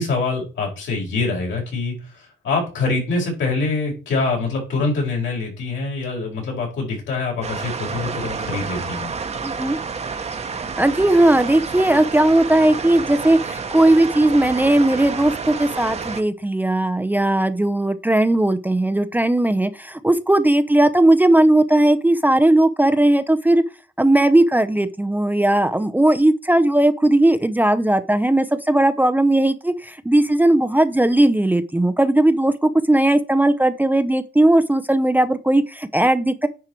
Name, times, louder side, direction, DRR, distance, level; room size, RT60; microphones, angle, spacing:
voice 1, 0.0-9.1, left 3 dB, 75° left, -1 dB, 4.8 m, -24 dB
sound 1, 7.4-16.2, right 5 dB, 35° right, 1.1 m, -29 dB
voice 2, 9.4-9.8 10.8-23.6 24.0-36.5, right 1 dB, 10° right, 10 dB, 0.7 m, -17 dB
9.9 x 4.8 x 4.5 m, 0.33 s
cardioid pair, 90°, 20 cm